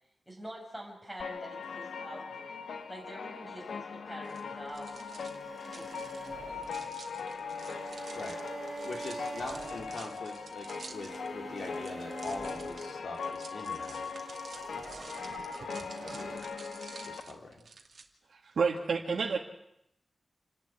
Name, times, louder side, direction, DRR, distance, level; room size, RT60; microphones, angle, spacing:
voice 1, 0.3-2.6 2.9-7.2, equal, ahead, -2 dB, 6.9 m, -47 dB
sound 1, 1.2-17.2, left 5 dB, 90° left, 1.2 m, -40 dB
sound 2, 4.2-18.0, right 4 dB, 60° right, 2.4 m, -51 dB
sound 3, 5.0-13.5 14.1-16.4, right 3 dB, 40° right, 3.5 m, -45 dB
voice 2, 8.8-14.1 15.8-16.5 17.0-17.6, left 3 dB, 65° left, 2 dB, 4.0 m, -43 dB
voice 3, 18.3-19.4, right 5 dB, 80° right, -1 dB, 2.1 m, -30 dB
28.5 x 11.5 x 9.7 m, 0.82 s
wide cardioid pair, 160°, 0 cm